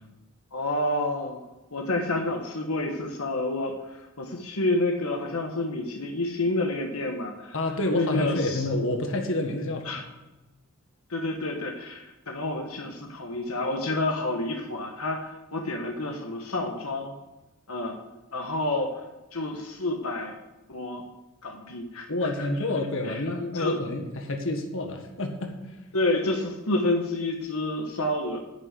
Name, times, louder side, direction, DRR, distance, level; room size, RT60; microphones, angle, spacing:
voice 1, 0.5-1.4 1.7-7.5 7.9-8.7 9.8-10.0 11.1-17.1 17.7-18.0 18.3-19.0 19.3-20.4 20.7-21.0 21.4-22.5 23.0-23.2 23.5-23.8 25.9-28.4, left 2 dB, 85° left, 2 dB, 1.4 m, -29 dB
voice 2, 7.5-10.0 22.1-25.5, left 2 dB, 65° left, 3 dB, 1.7 m, -28 dB
10.0 x 6.6 x 8.2 m, 1.0 s
head